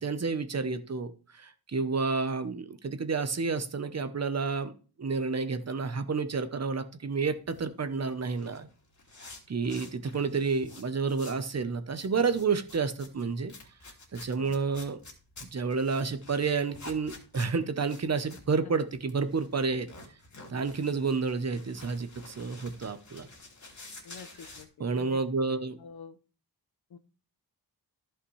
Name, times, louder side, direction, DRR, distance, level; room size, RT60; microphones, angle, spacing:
voice 1, 0.0-1.1 1.4-4.7 5.0-8.7 9.5-13.5 14.1-15.0 15.5-19.9 20.5-23.3 24.8-25.8, right 4 dB, 40° right, 10 dB, 0.9 m, -30 dB
sound 1, 7.5-11.5 11.8-24.6, left 2 dB, 45° left, 2.4 m, -50 dB
voice 2, 14.4-14.7 24.0-25.2 25.8-26.2 26.9-27.0, left 6 dB, 65° left, 12 dB, 0.9 m, -47 dB
14.0 x 5.8 x 3.2 m, 0.36 s
wide cardioid pair, 150°, 41 cm